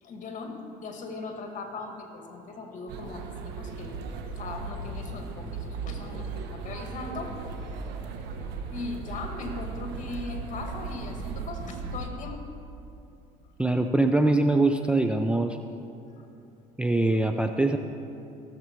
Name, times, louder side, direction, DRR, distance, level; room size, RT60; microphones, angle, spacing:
voice 1, 0.0-4.0 4.4-7.3 7.7-7.8 8.7-12.5 16.1-16.3, left 3 dB, 45° left, 3 dB, 2.1 m, -39 dB
sound 1, 2.9-12.1, right 4 dB, 75° right, 1.2 m, -37 dB
voice 2, 13.6-15.6 16.8-17.8, right 2 dB, 5° right, 5 dB, 0.5 m, -23 dB
17.0 x 7.4 x 4.7 m, 2.7 s
supercardioid pair, 85°, 18 cm